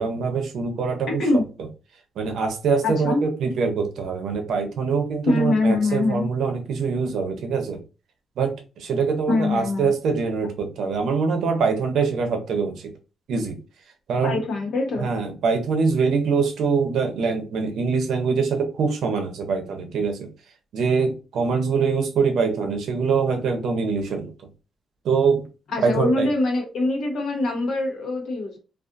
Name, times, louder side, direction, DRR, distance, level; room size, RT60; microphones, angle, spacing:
voice 1, 0.0-1.2 2.2-7.8 8.4-12.9 13.3-13.6 14.1-14.4 15.0-20.3 20.7-24.3 25.0-25.4 25.8-26.3, right 5 dB, 75° right, 4 dB, 0.6 m, -24 dB
voice 2, 2.8-3.2 5.3-6.3 9.3-9.9 14.2-15.1 25.7-28.6, left 2 dB, 65° left, 2 dB, 0.9 m, -23 dB
2.4 x 2.4 x 2.5 m, 0.32 s
wide cardioid pair, 165°, 0 cm